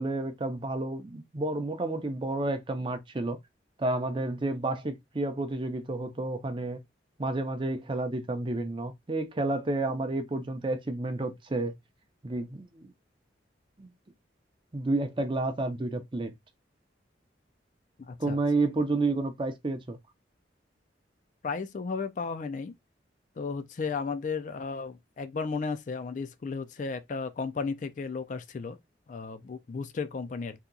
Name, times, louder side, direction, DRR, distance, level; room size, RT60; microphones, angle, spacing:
voice 1, 0.0-3.4 3.8-6.8 7.2-11.7 12.2-12.9 13.8-13.9 14.7-16.3 18.2-20.0, right 2 dB, 25° right, 0.5 m, -30 dB
voice 2, 18.0-18.4 21.4-22.7 23.4-28.8 29.1-30.6, left 4 dB, 45° left, 0.3 m, -34 dB
2.8 x 2.2 x 3.7 m
head